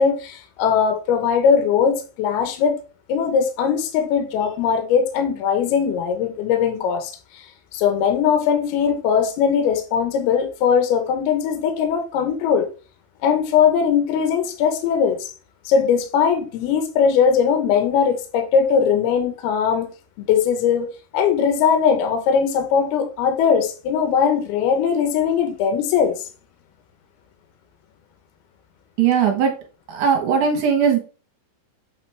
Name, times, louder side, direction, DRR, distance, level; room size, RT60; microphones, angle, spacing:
voice 1, 0.0-2.8 3.1-7.5 7.7-12.7 13.2-15.3 15.6-19.9 20.2-26.2, left 7 dB, 75° left, 3.0 m, -20 dB
voice 2, 29.0-29.5 29.9-31.0, right 7 dB, 65° right, 2.1 m, -18 dB
7.6 x 5.0 x 3.3 m
omnidirectional pair, 4.8 m